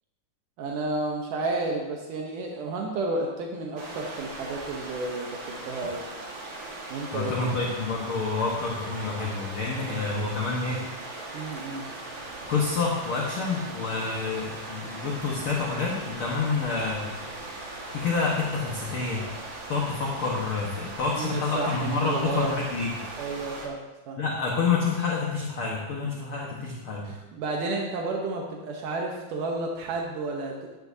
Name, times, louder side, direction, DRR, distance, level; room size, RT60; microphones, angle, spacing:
voice 1, 0.6-6.0 6.9-7.6 11.3-11.9 21.1-22.5 23.2-23.8 24.1-24.2 27.0-30.7, right 3 dB, 80° right, 0 dB, 2.5 m, -31 dB
sound 1, 3.8-23.7, right 2 dB, 45° right, 2.0 m, -39 dB
voice 2, 7.1-10.8 12.5-17.1 17.9-19.2 19.7-22.9 24.2-27.1, left 4 dB, 55° left, -3 dB, 1.7 m, -28 dB
13.0 x 10.5 x 2.7 m, 1.1 s
omnidirectional pair, 3.8 m